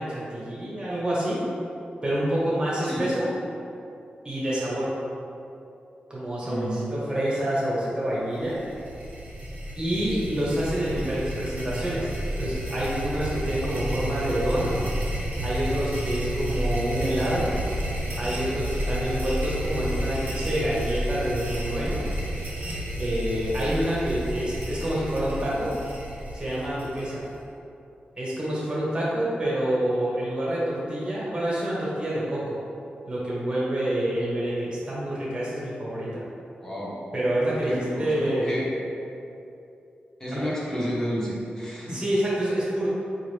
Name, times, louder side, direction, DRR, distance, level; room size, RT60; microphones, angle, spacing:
voice 1, 0.0-1.4 2.0-3.3 4.2-4.9 6.1-8.6 9.8-14.8 15.4-17.5 18.2-22.0 22.9-25.7 26.3-27.3 28.2-32.6 33.0-36.2 37.1-38.6 40.4-40.5 41.9-42.9, right 1 dB, 30° right, -7 dB, 1.2 m, -27 dB
voice 2, 6.4-6.8 36.6-37.0 37.7-38.7 40.2-42.0, equal, 15° left, -6 dB, 0.9 m, -30 dB
sound 1, 8.3-27.4, equal, 55° right, 0.9 m, -31 dB
4.3 x 2.5 x 3.3 m, 2.7 s
wide cardioid pair, 110°, 3 cm